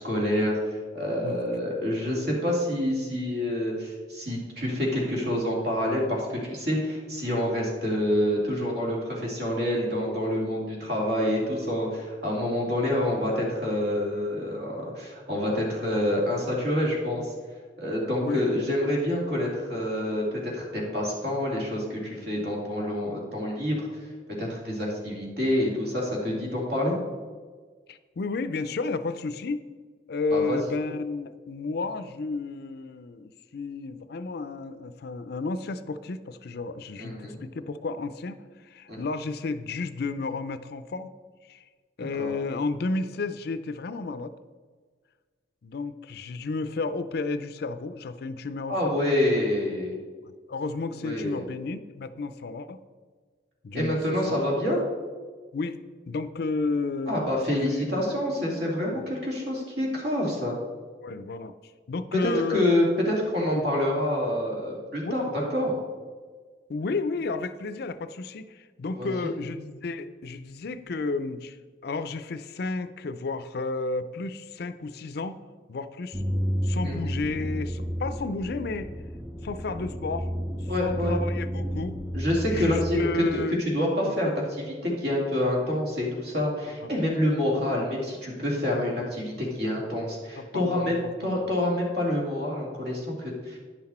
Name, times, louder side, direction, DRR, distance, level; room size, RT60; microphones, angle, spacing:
voice 1, 0.0-17.3 17.8-24.0 24.4-27.0 30.3-30.6 37.0-37.4 38.9-39.0 42.2-42.3 48.7-50.0 51.0-51.4 53.7-54.8 57.1-60.6 62.2-65.7 69.0-69.3 76.8-76.9 80.7-81.2 82.1-93.6, left 1 dB, 60° right, -2 dB, 2.5 m, -27 dB
voice 2, 27.9-29.7 30.1-41.1 41.5-41.6 42.0-44.3 45.6-49.1 50.5-52.8 53.6-54.0 54.3-54.5 55.5-55.8 56.1-57.3 57.7-58.2 58.9-59.1 61.0-61.5 61.9-62.6 63.5-63.7 65.0-65.3 66.7-71.6 71.8-75.4 75.7-76.2 76.6-78.9 79.4-80.3 80.8-82.0 82.5-83.6 86.8-87.0 90.4-91.5, left 3 dB, 60° left, 12 dB, 0.5 m, -32 dB
sound 1, 76.1-83.3, equal, 10° right, 0.4 m, -31 dB
10.0 x 5.9 x 4.3 m, 1.5 s
head